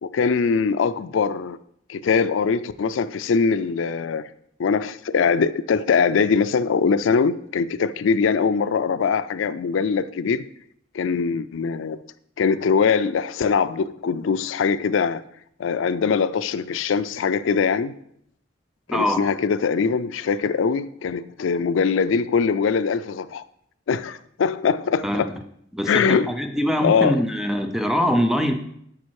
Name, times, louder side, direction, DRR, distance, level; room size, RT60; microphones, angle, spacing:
voice 1, 0.0-1.6 1.9-4.3 4.6-10.4 10.9-12.0 12.4-15.2 15.6-17.9 18.9-23.4 23.9-25.3 25.9-26.3 26.8-27.2, left 5 dB, 85° left, 0.4 m, -22 dB
voice 2, 18.9-19.2 25.0-25.4 25.7-28.5, equal, ahead, 0.6 m, -23 dB
8.5 x 5.2 x 4.7 m
head